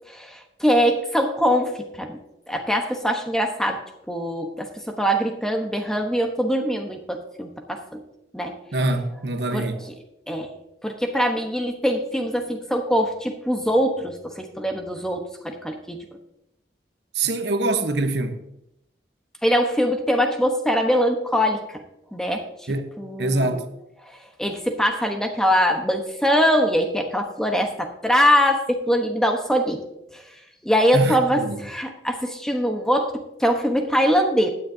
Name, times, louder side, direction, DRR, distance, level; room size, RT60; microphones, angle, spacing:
voice 1, 0.1-1.7 2.0-2.2 2.5-8.0 8.3-8.6 9.5-9.6 10.3-10.5 10.8-16.1 19.4-21.8 22.1-22.4 23.0-23.6 24.1-29.8 30.1-30.2 30.6-34.5, equal, 5° left, 1.0 m, -23 dB
voice 2, 8.7-9.9 17.1-18.4 22.7-22.9 23.2-23.7 30.9-31.6, right 2 dB, 75° right, 1.0 m, -24 dB
15.5 x 9.7 x 2.7 m
head